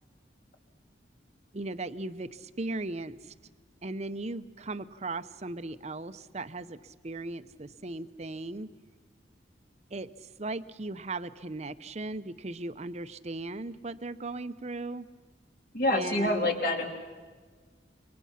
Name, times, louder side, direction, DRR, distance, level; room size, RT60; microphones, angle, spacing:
voice 1, 1.5-3.3 3.8-8.7 9.9-10.1 10.4-15.1 15.9-16.5, right 2 dB, 40° right, 12 dB, 0.8 m, -37 dB
voice 2, 15.7-16.9, left 1 dB, 55° left, 3 dB, 3.1 m, -27 dB
28.0 x 23.5 x 5.8 m, 1.5 s
head